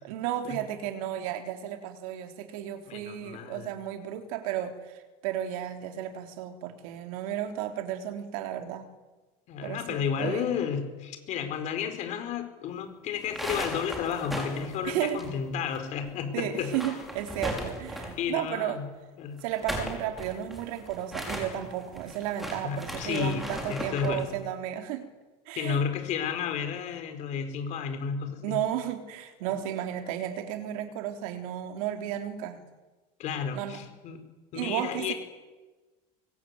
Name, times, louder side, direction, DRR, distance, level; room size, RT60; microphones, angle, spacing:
voice 1, 0.0-8.9 9.6-10.5 14.8-15.2 16.3-18.8 19.4-25.1 25.5-25.8 28.4-32.6 33.5-33.9 34.5-35.1, right 11 dB, 75° right, 6 dB, 3.6 m, -33 dB
voice 2, 2.9-3.7 9.5-16.7 18.2-18.9 19.2-19.4 22.6-23.4 23.7-24.3 25.5-28.6 33.2-34.2 34.5-35.1, left 7 dB, 40° left, 7 dB, 4.7 m, -32 dB
sound 1, 13.2-15.8 16.0-16.1 16.5-18.3 19.4-24.2, equal, ahead, 5.3 m, -37 dB
24.5 x 23.0 x 9.7 m, 1.2 s
cardioid pair, 170°, 18 cm